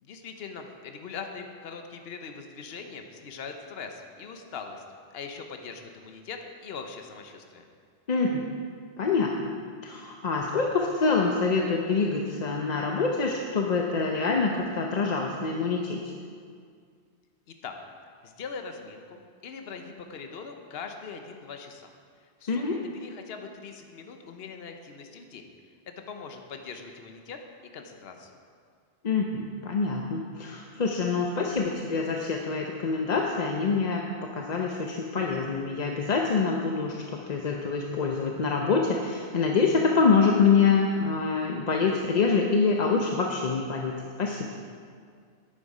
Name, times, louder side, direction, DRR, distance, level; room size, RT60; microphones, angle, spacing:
voice 1, 0.0-4.8 5.1-7.7 17.5-17.7 18.2-21.9 22.2-25.5 26.0-27.4 27.7-28.3, left 5 dB, 65° left, 5 dB, 1.0 m, -41 dB
voice 2, 8.1-8.4 9.0-9.5 9.8-16.0 22.5-22.8 29.0-34.0 34.3-44.5, left 4 dB, 45° left, 1 dB, 0.7 m, -25 dB
10.0 x 9.5 x 4.9 m, 2.2 s
omnidirectional pair, 1.1 m